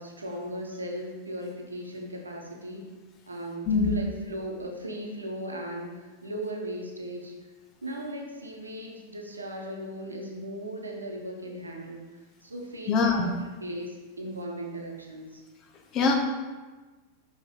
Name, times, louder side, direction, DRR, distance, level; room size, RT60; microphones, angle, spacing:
voice 1, 0.0-2.8 3.3-7.3 7.8-12.1 12.4-13.3 13.6-15.4, right 1 dB, 80° right, 1 dB, 1.1 m, -37 dB
voice 2, 12.9-13.3 15.9-16.1, left 4 dB, 35° left, 2 dB, 1.0 m, -22 dB
5.5 x 5.3 x 3.8 m, 1.3 s
figure-of-eight pair, 90°, 0 cm